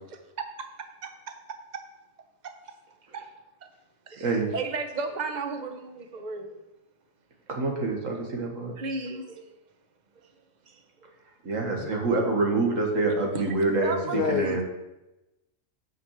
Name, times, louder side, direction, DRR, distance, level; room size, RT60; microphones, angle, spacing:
voice 1, 0.1-0.7 1.0-1.8 2.4-2.8 3.1-3.3 4.1-6.6 7.5-7.6 8.8-9.6 10.7-10.8 13.3-13.4 13.8-14.4, right 4 dB, 35° right, 6 dB, 0.9 m, -35 dB
voice 2, 7.5-8.7 11.4-14.6, right 3 dB, 70° right, 1 dB, 1.9 m, -26 dB
voice 3, 14.0-14.6, left 8 dB, 80° left, 7 dB, 0.4 m, -28 dB
6.0 x 6.0 x 7.1 m, 0.97 s
omnidirectional pair, 1.4 m